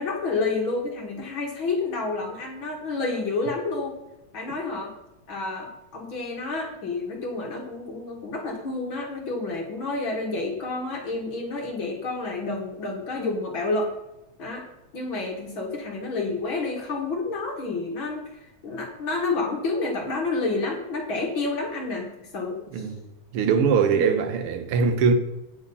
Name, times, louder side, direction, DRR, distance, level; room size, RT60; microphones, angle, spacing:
voice 1, 0.0-4.0 4.3-4.9 5.3-14.0 14.4-14.7 14.9-22.9 23.9-24.1, left 3 dB, 50° left, 2.1 m, -29 dB
voice 2, 22.7-23.1 23.3-25.1, right 5 dB, 65° right, 1.5 m, -22 dB
9.5 x 7.6 x 5.5 m
omnidirectional pair, 3.4 m